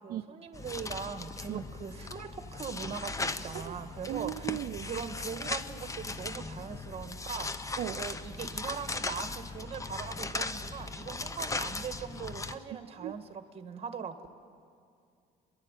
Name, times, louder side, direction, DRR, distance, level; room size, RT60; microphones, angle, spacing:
voice 1, 0.0-4.6 4.8-14.3, right 6 dB, 35° right, 8 dB, 1.8 m, -41 dB
sound 1, 0.5-12.6, left 3 dB, 20° left, 0.8 m, -38 dB
voice 2, 4.1-4.9 7.8-8.0 12.7-13.1, right 13 dB, 65° right, 6 dB, 0.7 m, -36 dB
29.5 x 11.5 x 9.1 m, 2.4 s
cardioid pair, 110°, 17 cm